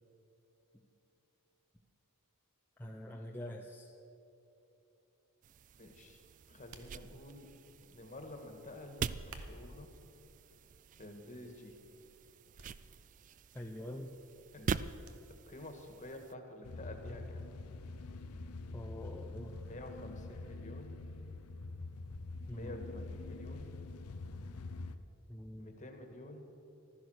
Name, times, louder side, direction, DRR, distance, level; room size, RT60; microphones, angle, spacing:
voice 1, 2.8-3.9 13.5-14.2 18.7-19.5 22.5-22.9 25.3-25.8, left 1 dB, 10° left, 0 dB, 0.6 m, -45 dB
sound 1, 5.4-16.3, right 5 dB, 35° right, 0.3 m, -44 dB
voice 2, 5.8-6.2 6.5-7.5 7.8-9.9 11.0-11.7 14.5-14.7 15.5-17.4 19.6-20.9 22.5-23.7 25.5-26.4, left 1 dB, 35° left, 4 dB, 1.6 m, -49 dB
sound 2, 6.7-7.5 9.1-9.9 10.6-11.0 11.4-11.6 12.6-12.7 13.0-13.1 15.0-15.2 15.6-15.7, right 3 dB, 65° right, 1.1 m, -52 dB
sound 3, 16.6-25.0, left 3 dB, 80° left, 0.7 m, -45 dB
15.5 x 12.5 x 6.4 m, 3.0 s
head